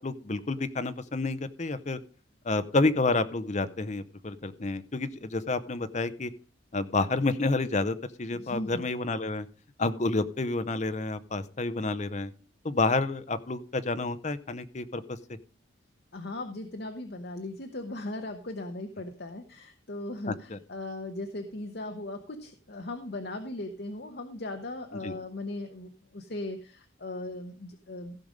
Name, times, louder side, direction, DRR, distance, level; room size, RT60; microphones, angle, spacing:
voice 1, 0.0-2.0 2.4-6.3 6.7-9.5 9.8-12.3 12.6-15.2 20.3-20.6 25.0-25.1, left 3 dB, 35° left, 12 dB, 0.6 m, -29 dB
voice 2, 8.4-8.8 16.1-28.2, left 2 dB, 55° left, 5 dB, 1.0 m, -38 dB
15.5 x 5.2 x 5.1 m, 0.38 s
head